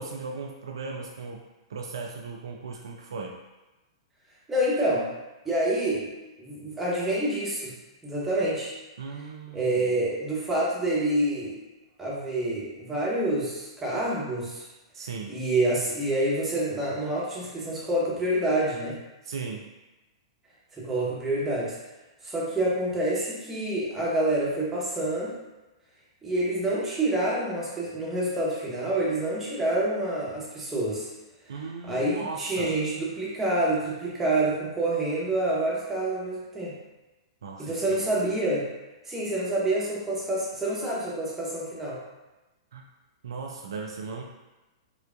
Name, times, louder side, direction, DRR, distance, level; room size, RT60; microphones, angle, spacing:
voice 1, 0.0-1.4 1.7-3.4 9.0-9.9 14.9-15.4 19.2-19.7 31.5-32.8 37.4-38.0 42.7-42.8 43.2-44.2, right 4 dB, 60° right, 1 dB, 0.3 m, -37 dB
voice 2, 4.5-5.1 5.4-6.1 6.4-7.7 8.0-8.7 9.5-11.6 12.0-14.7 15.3-19.0 20.7-21.8 22.2-25.3 26.2-31.1 31.8-36.7 37.6-38.7 39.1-42.0, right 1 dB, 10° right, -7 dB, 1.0 m, -27 dB
4.8 x 2.2 x 2.4 m, 1.1 s
figure-of-eight pair, 105°, 3 cm